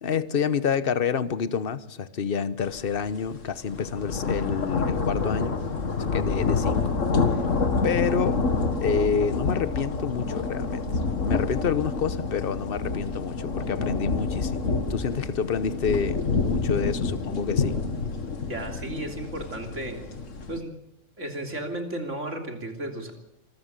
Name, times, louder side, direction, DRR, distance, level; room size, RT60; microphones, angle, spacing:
voice 1, 0.0-5.6 6.1-6.9 7.3-7.4 7.8-8.4 8.8-10.9 11.2-17.7, left 6 dB, 50° left, 14 dB, 1.2 m, -28 dB
sound 1, 2.8-2.9 3.3-20.6, left 4 dB, 75° left, 2.1 m, -27 dB
voice 2, 18.5-20.0 20.5-20.8 21.2-23.1, right 1 dB, 65° right, 4 dB, 3.6 m, -34 dB
25.5 x 14.0 x 8.3 m, 0.84 s
omnidirectional pair, 1.3 m